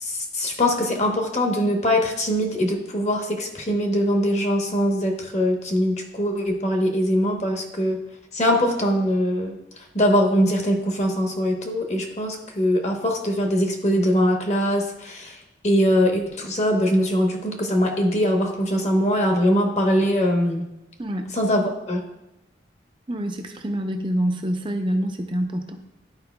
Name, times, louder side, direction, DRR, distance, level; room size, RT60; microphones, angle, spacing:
voice 1, 0.0-8.0 8.3-9.6 9.9-15.4 15.6-20.7 21.3-22.0, equal, 40° left, 2 dB, 1.0 m, -22 dB
voice 2, 21.0-21.3 23.1-25.8, equal, 25° right, 5 dB, 0.6 m, -26 dB
11.5 x 4.8 x 2.3 m, 0.94 s
head